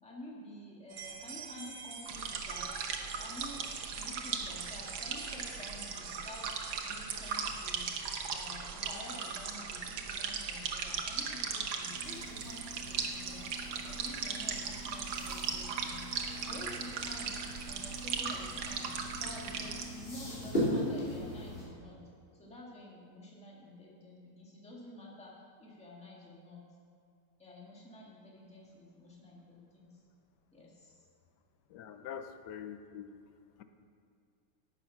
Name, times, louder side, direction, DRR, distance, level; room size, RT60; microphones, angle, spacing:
voice 1, 0.0-2.7 3.2-3.7 4.0-7.9 8.3-16.1 16.4-17.3 17.6-22.0 22.3-26.6 27.4-30.0 30.5-31.1, left 1 dB, 5° left, -4 dB, 1.8 m, -50 dB
sound 1, 0.9-20.1, right 5 dB, 50° right, 1.5 m, -52 dB
sound 2, 2.1-19.8, right 6 dB, 70° right, 1.7 m, -38 dB
sound 3, 11.8-21.6, equal, 25° left, 3.4 m, -40 dB
voice 2, 31.7-33.1, left 8 dB, 65° left, 8 dB, 1.2 m, -44 dB
11.5 x 8.5 x 5.9 m, 2.4 s
omnidirectional pair, 2.4 m